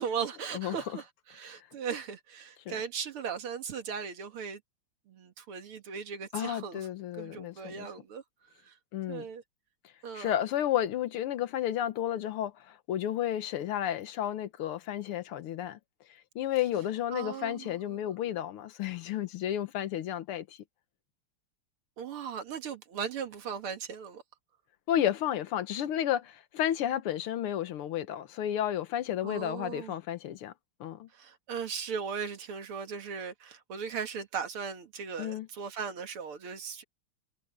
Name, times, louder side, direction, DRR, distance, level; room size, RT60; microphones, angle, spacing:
voice 1, 0.0-4.6 5.1-6.9 7.2-8.2 8.6-8.8 9.1-9.4 10.0-10.4 17.1-18.0 22.0-24.2 29.2-30.0 31.1-36.8, right 6 dB, 80° right, 2.7 m, -38 dB
voice 2, 6.3-7.9 8.9-9.2 10.2-15.8 16.4-20.5 24.9-30.5 30.8-31.1 35.2-35.5, left 11 dB, 90° left, 1.9 m, -32 dB
omnidirectional pair, 2.4 m